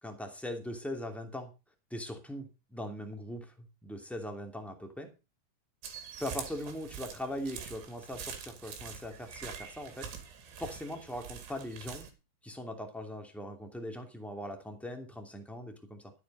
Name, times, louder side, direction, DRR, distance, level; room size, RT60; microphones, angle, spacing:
voice 1, 0.0-1.5 1.9-5.1 6.2-10.1 10.6-12.1 12.4-16.1, left 1 dB, ahead, 3 dB, 1.4 m, -40 dB
sound 1, 5.8-12.1, right 7 dB, 85° right, 4.9 m, -45 dB
13.0 x 9.4 x 5.5 m, 0.30 s
omnidirectional pair, 5.0 m